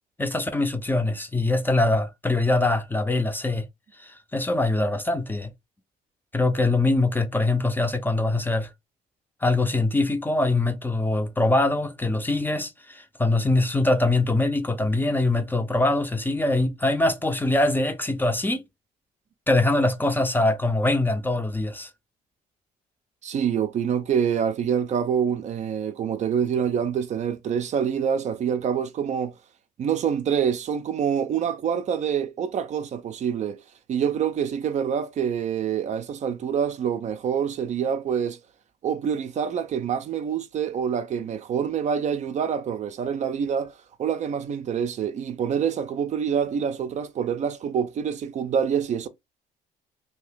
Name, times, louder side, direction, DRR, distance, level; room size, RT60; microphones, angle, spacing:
voice 1, 0.2-3.7 4.0-5.5 6.3-8.7 9.4-18.6 19.5-21.9, left 2 dB, 10° left, 0.5 m, -23 dB
voice 2, 23.2-29.3 29.8-33.6 33.9-38.4 38.8-49.1, right 8 dB, 45° right, 0.4 m, -26 dB
2.7 x 2.6 x 3.5 m
cardioid pair, 110°, 17 cm